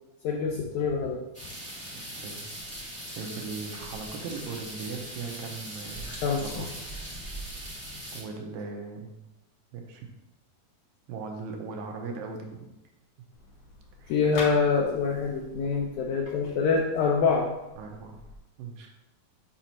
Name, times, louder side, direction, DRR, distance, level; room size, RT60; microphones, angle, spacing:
voice 1, 0.2-1.2 6.1-6.7 14.1-17.5, left 5 dB, 80° left, -1 dB, 1.8 m, -25 dB
sound 1, 1.3-8.2, right 1 dB, 10° left, 0.4 m, -40 dB
voice 2, 3.2-6.7 8.1-9.2 9.7-10.1 11.1-12.7 14.0-14.1 17.8-18.2 18.6-18.9, right 4 dB, 80° right, 2 dB, 2.5 m, -38 dB
sound 2, 13.3-18.4, left 2 dB, 60° left, 1.6 m, -45 dB
7.4 x 5.4 x 3.0 m, 0.97 s
omnidirectional pair, 4.2 m